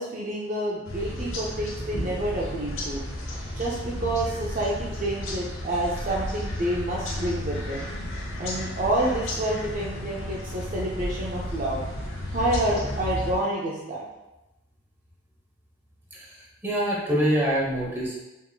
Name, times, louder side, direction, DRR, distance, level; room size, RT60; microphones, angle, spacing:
voice 1, 0.0-3.0 3.6-7.9 8.4-11.8 12.3-14.1, right 1 dB, 40° right, -4 dB, 0.4 m, -28 dB
sound 1, 0.8-13.3, left 1 dB, 75° left, 0.9 m, -33 dB
voice 2, 16.1-18.2, equal, 10° right, -4 dB, 0.7 m, -25 dB
4.7 x 3.5 x 2.2 m, 1.0 s
head